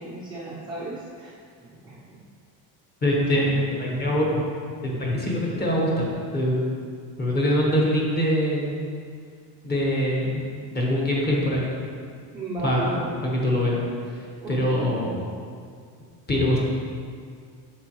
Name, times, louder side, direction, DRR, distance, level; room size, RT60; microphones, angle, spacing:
voice 1, 0.0-1.3 1.7-2.2 3.3-3.6 12.3-13.1 14.4-15.0, right 2 dB, 10° right, -8 dB, 0.5 m, -35 dB
voice 2, 3.0-4.5 4.8-6.1 6.3-6.7 7.2-8.7 9.6-10.4 10.7-11.7 12.6-13.8 14.1-15.2 16.3-16.6, equal, 20° left, -4 dB, 1.2 m, -23 dB
8.9 x 6.7 x 3.0 m, 2.1 s
cardioid pair, 175°, 46 cm